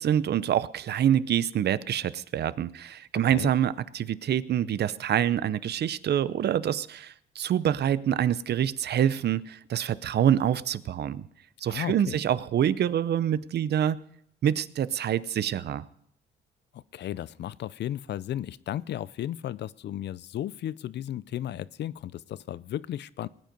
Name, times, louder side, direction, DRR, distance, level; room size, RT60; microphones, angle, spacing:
voice 1, 0.0-11.3 11.6-14.0 14.4-15.8, right 10 dB, 55° right, 17 dB, 0.6 m, -26 dB
voice 2, 11.7-12.2 16.7-23.3, left 12 dB, 60° left, 18 dB, 0.5 m, -34 dB
19.0 x 9.2 x 5.3 m, 0.72 s
cardioid pair, 90°, 20 cm